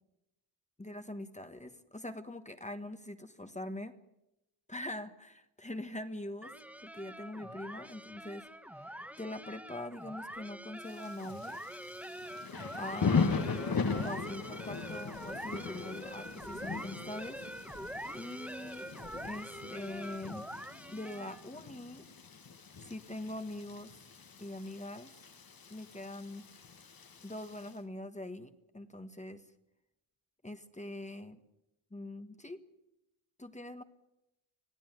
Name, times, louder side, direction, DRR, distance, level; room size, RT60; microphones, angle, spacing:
voice 1, 0.8-3.9 4.7-6.5 6.8-8.5 8.7-11.6 12.7-13.4 13.9-17.4 18.1-18.9 19.2-20.5 20.9-22.1 22.8-24.1 24.4-25.1 25.7-26.5 27.2-29.4 30.4-31.4 31.9-32.6 33.4-33.8, left 1 dB, 15° left, 8 dB, 1.5 m, -43 dB
sound 1, 6.4-21.6, equal, 5° right, 1.5 m, -45 dB
Thunder / Rain, 10.9-27.7, left 5 dB, 50° left, 1.7 m, -39 dB
25.5 x 17.5 x 9.5 m, 0.89 s
wide cardioid pair, 150°, 46 cm